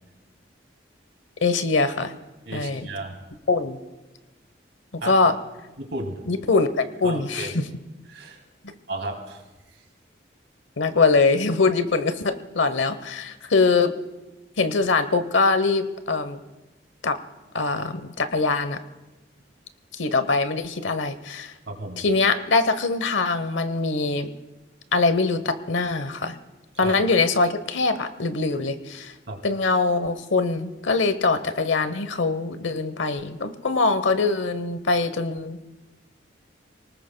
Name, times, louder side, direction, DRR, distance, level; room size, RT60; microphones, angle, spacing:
voice 1, 1.4-2.1 2.5-2.9 3.5-3.8 4.9-5.3 6.3-7.7 10.8-13.9 14.6-16.4 17.0-17.2 17.5-18.8 20.0-21.5 22.0-24.3 24.9-26.4 26.8-29.1 29.4-35.7, left 3 dB, 85° left, 11 dB, 1.0 m, -23 dB
voice 2, 2.5-3.2 5.0-5.2 5.8-6.2 7.0-7.5 8.1-8.4 8.9-9.4 21.7-22.0 26.8-27.0 29.3-29.5, right 2 dB, 75° right, 3 dB, 2.4 m, -33 dB
28.0 x 19.0 x 2.2 m, 1.1 s
head